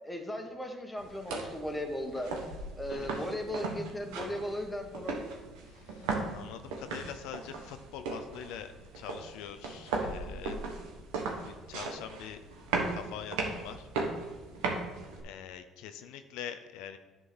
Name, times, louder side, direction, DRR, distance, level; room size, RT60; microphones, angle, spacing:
voice 1, 0.0-2.3 2.8-5.2, left 1 dB, 10° left, 3 dB, 1.4 m, -37 dB
sound 1, 1.0-15.2, right 3 dB, 80° right, 1.3 m, -37 dB
voice 2, 5.7-10.6 11.4-12.4 12.9-13.9 15.2-17.0, left 9 dB, 80° left, 8 dB, 0.5 m, -44 dB
10.0 x 3.8 x 6.2 m, 1.2 s
supercardioid pair, 70°, 0 cm